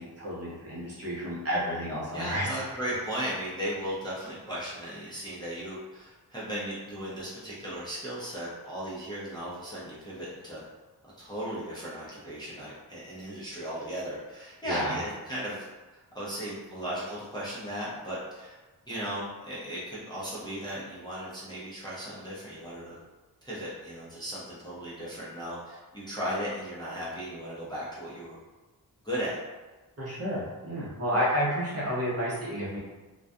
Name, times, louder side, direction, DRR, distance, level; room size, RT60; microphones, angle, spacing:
voice 1, 0.0-2.5 14.6-15.0 30.0-32.8, equal, 40° right, -6 dB, 0.7 m, -30 dB
voice 2, 2.1-10.6 11.2-15.7 15.9-18.6 18.9-23.0 23.4-28.4 29.0-29.4, equal, 10° left, -9 dB, 0.5 m, -36 dB
2.4 x 2.2 x 2.5 m, 1.2 s
wide cardioid pair, 130°, 39 cm